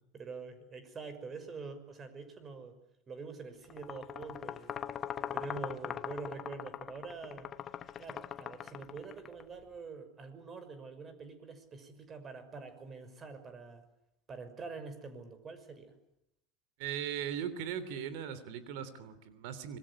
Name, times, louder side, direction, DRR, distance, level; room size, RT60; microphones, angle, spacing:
voice 1, 0.1-2.8 3.1-4.8 5.2-7.5 8.0-13.8 14.3-15.9, right 4 dB, 25° right, 11 dB, 5.9 m, -45 dB
sound 1, 3.7-9.4, left 9 dB, 35° left, 1.3 m, -41 dB
voice 2, 16.8-19.8, right 9 dB, 60° right, 13 dB, 3.2 m, -38 dB
26.0 x 22.0 x 9.8 m, 0.80 s
hypercardioid pair, 90°, 0 cm